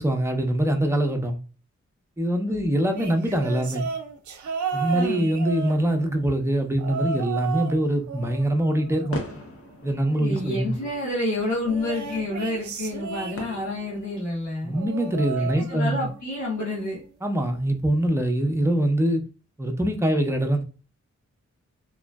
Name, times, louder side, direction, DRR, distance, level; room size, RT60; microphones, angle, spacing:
voice 1, 0.0-1.4 2.2-3.9 4.7-9.2 9.8-10.7 14.6-16.1 17.2-19.2 19.6-20.6, right 1 dB, 10° right, 0.7 m, -23 dB
sound 1, 2.9-6.2 6.8-7.8 8.1-9.6 11.7-13.8 14.7-16.2 16.5-16.9 18.0-18.1, right 5 dB, 85° right, 0.5 m, -33 dB
voice 2, 4.9-5.3 10.0-14.8 15.4-17.0, left 2 dB, 75° left, 1.3 m, -29 dB
sound 2, 7.8-14.3, left 1 dB, 50° left, 0.8 m, -42 dB
3.0 x 2.5 x 2.2 m
cardioid pair, 55°, 29 cm